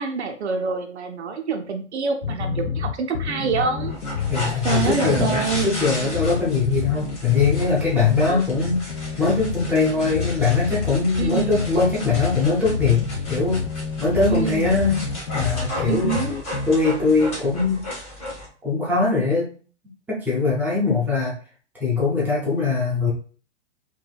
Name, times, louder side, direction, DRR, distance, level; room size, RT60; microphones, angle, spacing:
voice 1, 0.0-3.9 4.6-5.7 11.2-11.6 14.3-14.7 15.9-16.3, right 5 dB, 65° right, 6 dB, 0.5 m, -26 dB
sound 1, 2.2-16.7, left 6 dB, 60° left, 0.5 m, -29 dB
sound 2, 3.8-18.5, equal, 15° left, 1.1 m, -34 dB
voice 2, 4.3-8.9 9.2-13.0 13.3-13.7 14.0-15.0 15.3-16.2 16.7-17.9 18.6-19.5 20.1-21.3 21.8-23.1, left 4 dB, 5° right, -6 dB, 0.5 m, -21 dB
2.7 x 2.6 x 2.3 m, 0.41 s
figure-of-eight pair, 115°, 37 cm